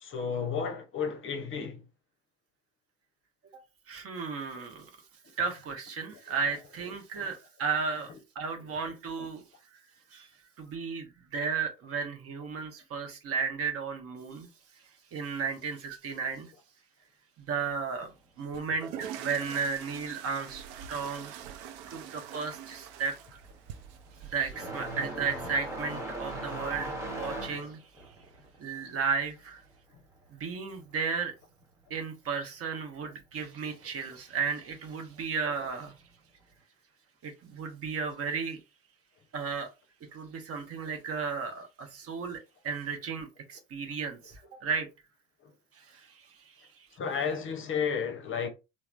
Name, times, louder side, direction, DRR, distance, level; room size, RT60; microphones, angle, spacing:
voice 1, 0.0-1.8 7.1-7.3 8.5-9.0 47.0-48.5, left 6 dB, 35° left, 0.7 m, -33 dB
voice 2, 3.9-4.9 5.4-9.4 10.1-10.3 10.6-14.5 15.1-16.5 17.4-18.1 18.4-21.4 21.9-23.2 24.2-27.8 28.6-29.6 30.3-31.3 31.9-35.9 37.2-38.6 39.3-39.7 40.1-42.4 42.6-44.9 45.7-46.4, right 5 dB, 40° right, 0.9 m, -34 dB
sound 1, 18.5-24.5, right 9 dB, 60° right, 0.5 m, -44 dB
sound 2, 22.2-22.3 22.6-30.9 31.2-32.2 33.2-33.3 34.1-34.2 36.0-36.1, right 1 dB, 10° right, 1.0 m, -40 dB
3.1 x 2.1 x 2.4 m
hypercardioid pair, 70°, 37 cm